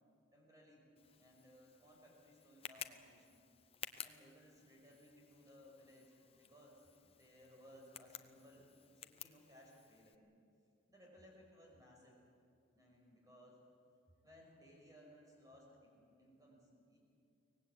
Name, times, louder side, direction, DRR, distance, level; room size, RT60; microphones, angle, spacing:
voice 1, 0.3-3.5 4.0-10.2 10.9-12.3 12.7-13.6 14.2-17.0, equal, 15° right, -1 dB, 5.8 m, -62 dB
Tick, 1.0-10.1, left 8 dB, 30° left, 0.7 m, -55 dB
24.0 x 18.5 x 8.5 m, 2.5 s
head